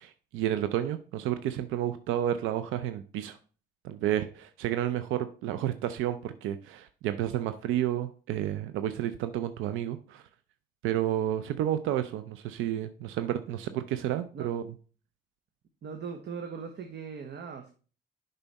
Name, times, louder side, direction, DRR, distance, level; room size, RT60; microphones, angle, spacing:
voice 1, 0.0-3.4 3.8-10.2 10.8-14.6, right 11 dB, 85° right, 0.5 m, -31 dB
voice 2, 15.8-17.7, right 6 dB, 60° right, 1.0 m, -40 dB
7.1 x 5.5 x 4.1 m
supercardioid pair, 60°, 20 cm